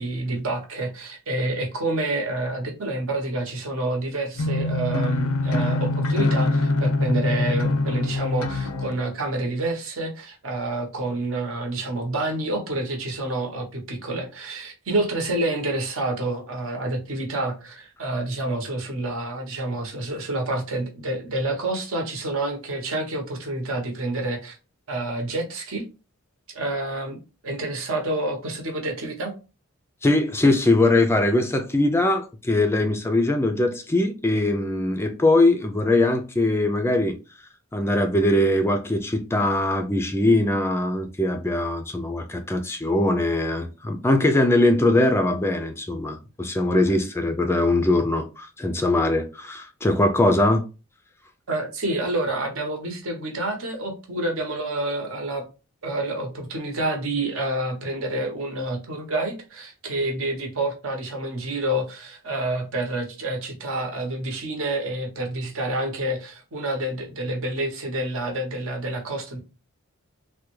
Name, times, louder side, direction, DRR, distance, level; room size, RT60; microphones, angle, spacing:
voice 1, 0.0-24.6 24.9-25.8 26.5-29.3 51.5-55.4 55.8-69.4, right 2 dB, 70° right, 0.9 m, -28 dB
sound 1, 4.4-8.9, left 2 dB, 85° left, 0.5 m, -23 dB
voice 2, 30.0-37.2 37.7-50.6, left 2 dB, 10° left, 0.3 m, -21 dB
3.4 x 2.2 x 3.0 m
head